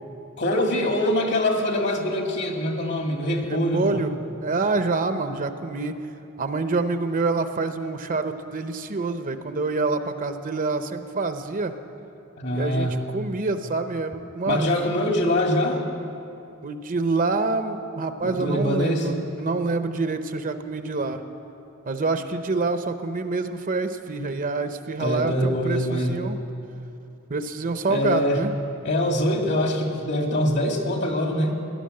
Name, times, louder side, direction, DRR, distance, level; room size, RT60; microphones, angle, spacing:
voice 1, 0.4-4.0 12.4-13.0 14.5-15.8 18.2-19.1 25.0-26.3 27.9-28.4 28.8-31.5, left 1 dB, 55° left, 3 dB, 2.0 m, -24 dB
voice 2, 3.4-4.2 4.4-6.0 6.4-11.7 12.5-14.7 16.6-21.2 21.8-26.4 27.3-28.5, right 3 dB, 40° right, 9 dB, 0.7 m, -26 dB
16.5 x 11.0 x 7.7 m, 2.7 s
head